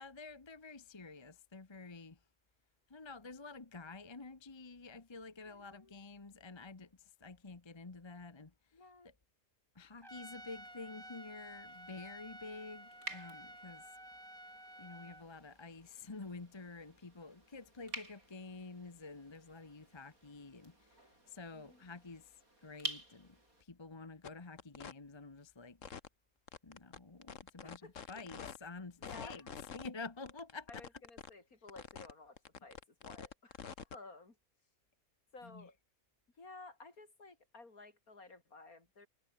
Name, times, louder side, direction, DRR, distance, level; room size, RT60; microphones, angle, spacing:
voice 1, 0.0-2.2 2.9-6.9 7.2-8.5 9.0-9.1 9.7-13.8 14.8-22.3 22.6-25.8 26.6-30.8 35.4-35.7, left 3 dB, 20° left, 1.0 m, -50 dB
voice 2, 5.4-6.0 8.7-9.1 21.5-21.8 27.6-28.2 29.0-29.5 30.7-34.4 35.3-35.8 36.4-39.1, left 3 dB, 75° left, 4.4 m, -55 dB
Trumpet, 10.0-15.3, right 1 dB, 15° right, 5.6 m, -52 dB
sound 1, 10.1-23.6, right 2 dB, 75° right, 8.3 m, -51 dB
sound 2, 24.2-24.3 24.6-24.9 25.8-26.1 26.5-28.6 29.0-29.9 30.3-31.3 31.7-32.1 32.4-34.0, left 7 dB, 60° left, 1.6 m, -47 dB
omnidirectional pair, 1.5 m